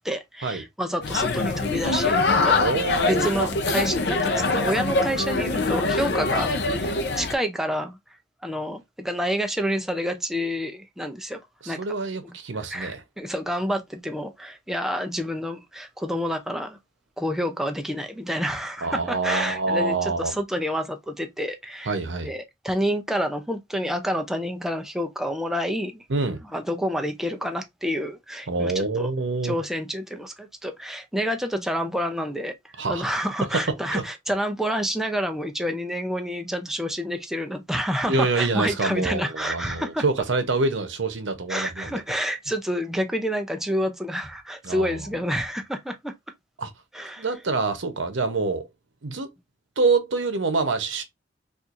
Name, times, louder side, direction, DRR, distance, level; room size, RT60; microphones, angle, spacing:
voice 1, 0.0-2.2 2.4-2.7 3.0-8.0 8.4-11.4 11.7-11.8 12.2-12.3 12.7-16.8 17.2-21.9 22.2-26.0 26.5-29.1 29.4-32.5 32.9-40.0 41.5-46.1 46.9-47.3, equal, ahead, 0.4 m, -28 dB
sound 1, 1.0-7.3, left 3 dB, 60° left, 0.5 m, -23 dB
voice 2, 2.5-3.3 11.6-13.0 18.8-20.4 21.9-22.3 26.1-26.4 28.5-29.6 32.8-33.0 33.9-34.0 38.1-41.9 44.6-45.1 46.6-46.7 47.2-48.7 49.0-49.3 49.8-51.0, right 3 dB, 80° right, 0.8 m, -26 dB
4.3 x 2.5 x 2.5 m
head